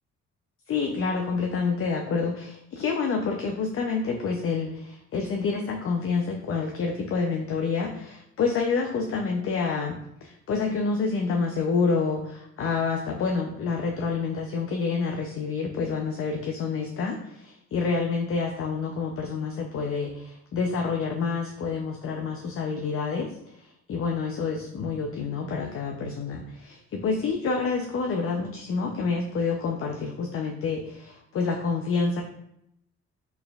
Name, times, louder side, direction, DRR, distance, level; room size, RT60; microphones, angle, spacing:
voice 1, 0.7-32.2, left 4 dB, 45° left, 2 dB, 0.5 m, -28 dB
4.1 x 3.4 x 2.3 m, 0.80 s
cardioid pair, 90°, 30 cm